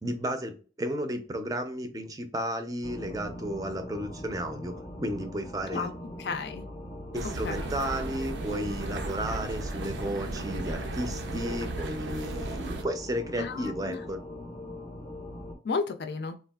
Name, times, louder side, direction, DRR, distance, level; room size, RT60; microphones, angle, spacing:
voice 1, 0.0-5.9 7.1-14.2, right 1 dB, 20° right, 7 dB, 0.4 m, -33 dB
sound 1, 2.8-15.6, left 1 dB, 25° left, 0.6 m, -41 dB
voice 2, 6.2-6.6 7.4-7.6 13.4-14.0 15.6-16.4, left 4 dB, 70° left, 7 dB, 0.4 m, -32 dB
sound 2, 7.1-12.8, right 2 dB, 85° right, 0.5 m, -35 dB
3.5 x 2.4 x 2.3 m, 0.37 s
head